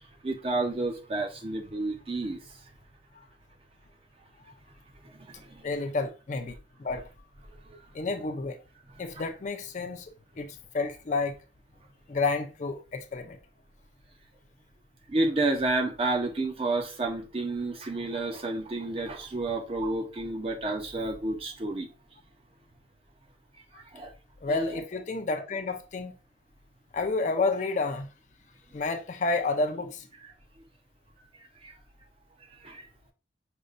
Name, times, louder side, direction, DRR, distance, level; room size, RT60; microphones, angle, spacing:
voice 1, 0.2-2.4 5.3-5.7 7.7-7.8 15.1-21.9 23.9-24.1 24.5-24.8 31.6-31.7 32.6-32.9, right 2 dB, 30° right, 0.6 m, -30 dB
voice 2, 5.6-7.1 7.9-8.6 9.0-10.1 10.4-10.5 10.7-11.3 12.1-13.4 24.4-26.1 26.9-28.1 28.7-30.1, left 3 dB, 40° left, 0.4 m, -30 dB
5.1 x 2.2 x 2.5 m
head